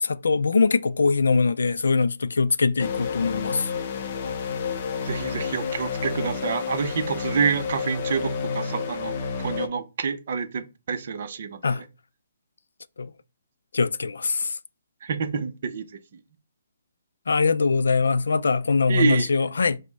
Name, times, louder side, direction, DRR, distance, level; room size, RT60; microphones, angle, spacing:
voice 1, 0.0-3.7 11.6-11.8 13.0-13.1 13.7-14.6 17.3-19.8, left 4 dB, 85° left, 0.3 m, -22 dB
sound 1, 2.8-9.7, left 6 dB, 30° left, 0.5 m, -30 dB
voice 2, 5.0-11.8 15.0-15.8 18.9-19.3, right 5 dB, 45° right, 0.5 m, -27 dB
5.1 x 2.0 x 4.5 m
hypercardioid pair, 170°, 0 cm